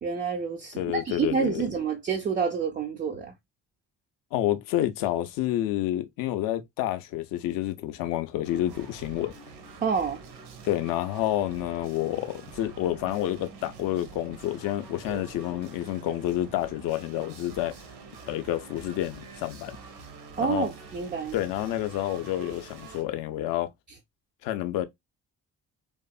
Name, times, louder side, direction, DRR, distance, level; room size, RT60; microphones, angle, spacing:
voice 1, 0.0-3.3 9.8-10.2 15.1-15.2 20.4-21.3, right 6 dB, 20° right, 0.3 m, -28 dB
voice 2, 0.7-1.7 4.3-9.3 10.6-17.9 18.3-19.8 20.4-20.7 21.3-23.7 24.4-24.9, left 13 dB, 45° left, 0.4 m, -29 dB
sound 1, 8.4-23.0, right 5 dB, 75° right, 0.7 m, -46 dB
2.5 x 2.3 x 2.2 m
figure-of-eight pair, 40°, 48 cm